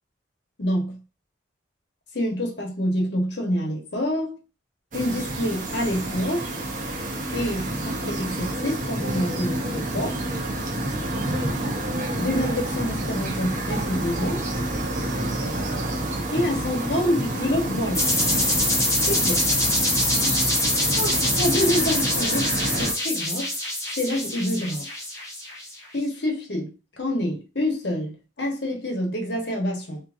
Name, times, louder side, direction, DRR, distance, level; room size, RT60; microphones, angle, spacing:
voice 1, 0.6-1.0 2.1-4.4 4.9-6.5 7.3-10.2 12.2-14.5 16.3-18.1 19.1-19.5 21.0-23.5 24.0-24.9 25.9-30.0, left 1 dB, 60° left, 1.0 m, -27 dB
sound 1, 4.9-22.9, right 1 dB, 45° right, 0.7 m, -28 dB
sound 2, 17.9-25.7, left 1 dB, 15° left, 1.0 m, -24 dB
3.6 x 2.7 x 2.5 m
head